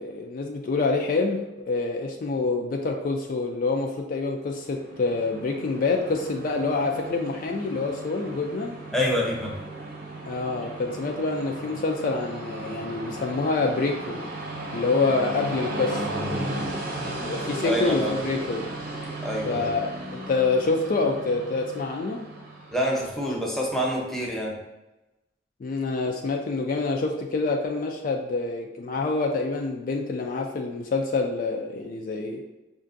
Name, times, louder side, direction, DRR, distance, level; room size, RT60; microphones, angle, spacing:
voice 1, 0.0-1.4 1.7-8.8 10.3-14.2 14.7-16.0 17.2-18.7 19.5-22.2 25.6-32.4, left 3 dB, 45° left, 2 dB, 0.3 m, -26 dB
Train, 4.6-23.2, right 1 dB, 50° right, 0.7 m, -35 dB
voice 2, 8.9-9.5 16.7-16.8 17.6-18.2 19.2-19.7 22.7-24.6, equal, ahead, -3 dB, 0.6 m, -27 dB
5.3 x 2.5 x 2.5 m, 1.0 s
head